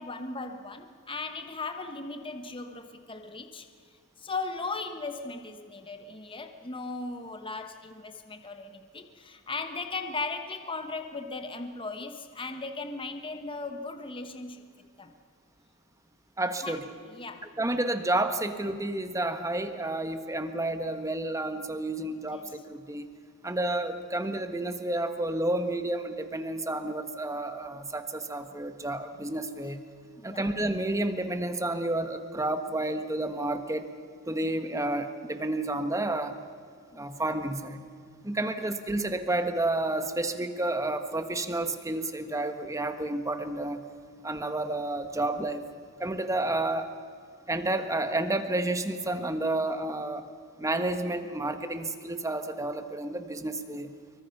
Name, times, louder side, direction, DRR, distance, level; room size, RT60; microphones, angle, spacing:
voice 1, 0.0-3.7 4.2-14.6 15.0-15.1 16.6-16.8 17.1-17.5 22.3-22.5 30.2-30.4 36.9-37.2, left 3 dB, 25° left, 7 dB, 1.2 m, -37 dB
voice 2, 16.4-16.8 17.6-23.1 23.4-29.8 30.2-33.9 34.3-36.4 37.0-37.8 38.2-43.8 44.2-45.7 46.0-46.9 47.5-50.3 50.6-53.9, right 2 dB, 15° right, 8 dB, 1.3 m, -30 dB
25.5 x 23.5 x 5.9 m, 2.2 s
head